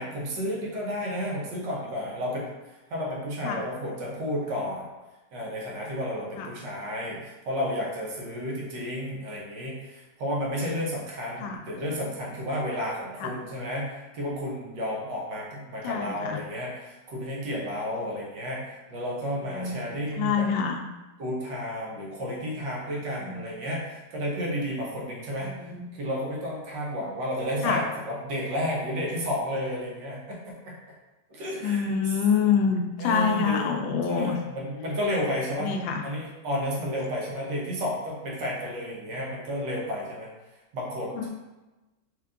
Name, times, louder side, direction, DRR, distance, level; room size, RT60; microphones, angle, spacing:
voice 1, 0.0-4.9 5.3-20.5 21.2-25.5 25.9-30.8 31.3-32.1 33.0-35.7 36.0-40.3 40.7-41.3, equal, 70° right, -3 dB, 1.5 m, -32 dB
voice 2, 15.8-16.4 19.5-19.8 20.2-20.8 23.2-23.4 25.5-25.8 27.6-27.8 31.6-34.4 35.6-36.0 41.1-41.3, left 6 dB, 85° left, 3 dB, 1.3 m, -26 dB
4.4 x 2.8 x 2.5 m, 1.1 s
omnidirectional pair, 2.1 m